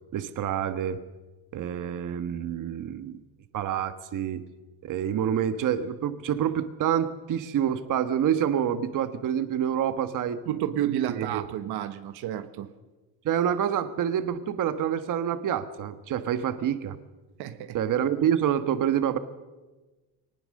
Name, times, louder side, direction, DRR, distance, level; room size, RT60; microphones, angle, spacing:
voice 1, 0.1-1.0 1.5-3.2 3.5-4.4 4.8-10.4 11.1-11.4 13.2-17.0 17.7-19.2, right 9 dB, 45° right, 11 dB, 1.4 m, -27 dB
voice 2, 10.5-12.7 17.4-17.9, right 11 dB, 65° right, 10 dB, 1.4 m, -31 dB
21.5 x 19.5 x 6.6 m, 1.2 s
cardioid pair, 130°, 42 cm